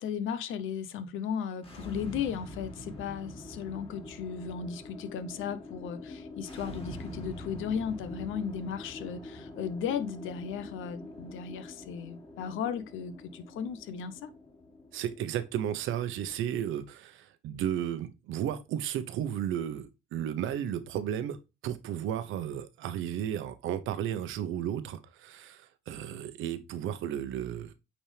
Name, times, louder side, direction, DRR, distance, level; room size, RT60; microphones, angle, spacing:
voice 1, 0.0-14.3, left 7 dB, 85° left, 0.9 m, -36 dB
sound 1, 1.6-16.5, left 1 dB, 30° left, 3.3 m, -45 dB
voice 2, 14.9-21.4 21.6-27.7, right 10 dB, 90° right, 1.0 m, -34 dB
8.8 x 4.3 x 3.4 m
cardioid pair, 90°, 20 cm